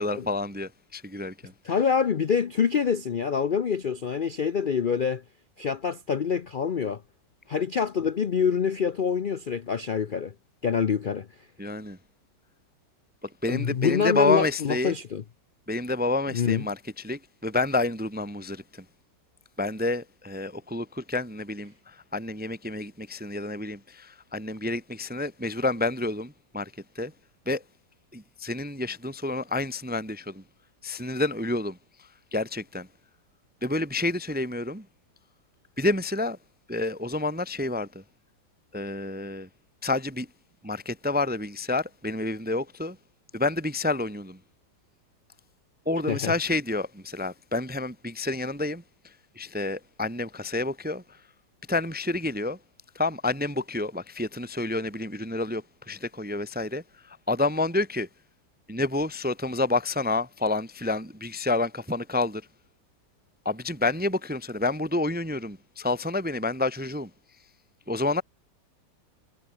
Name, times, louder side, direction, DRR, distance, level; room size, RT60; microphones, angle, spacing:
voice 1, 0.0-1.8 11.6-12.0 13.4-14.9 15.7-16.8 17.0-18.8 19.6-27.1 27.5-27.6 28.1-30.4 30.8-31.8 32.3-32.9 33.6-34.9 35.8-36.4 36.7-38.0 38.7-39.5 39.8-40.3 40.6-43.0 43.3-44.4 45.9-48.8 49.4-51.2 51.7-52.6 52.9-58.1 58.7-62.4 63.4-67.1 67.9-68.2, left 2 dB, 10° right, 0.4 m, -29 dB
voice 2, 1.6-5.2 5.6-7.0 7.5-10.3 10.6-11.3 13.5-15.2 16.3-16.7 46.1-46.3, left 6 dB, 75° left, 0.4 m, -26 dB
omnidirectional pair, 1.9 m